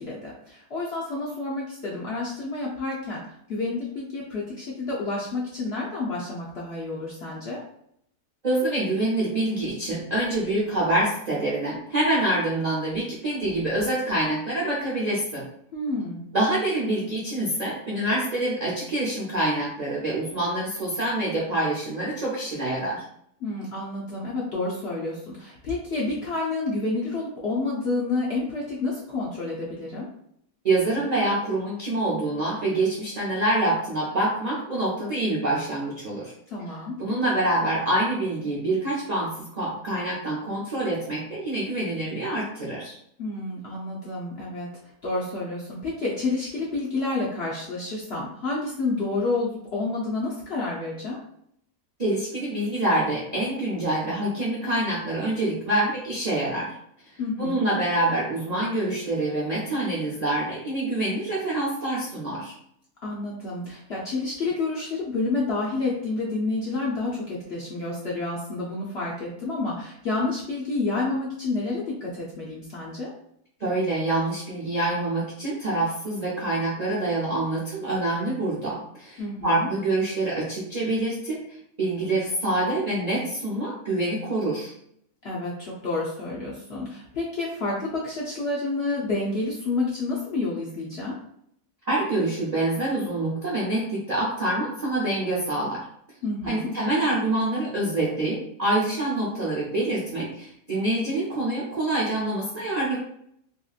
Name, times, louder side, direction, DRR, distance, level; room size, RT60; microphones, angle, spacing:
voice 1, 0.0-3.2 3.5-7.6 15.7-16.2 23.4-30.1 36.5-37.0 43.2-44.7 45.0-51.2 57.2-57.6 63.0-73.1 79.2-79.7 85.2-91.2 96.2-96.7, left 3 dB, 60° left, -5 dB, 0.6 m, -29 dB
voice 2, 8.4-15.5 16.3-23.0 30.6-36.3 37.0-43.0 52.0-56.7 57.4-62.5 73.6-84.7 91.9-95.8 96.4-103.0, right 1 dB, 60° right, -6 dB, 0.4 m, -26 dB
2.9 x 2.7 x 2.3 m, 0.71 s
omnidirectional pair, 1.7 m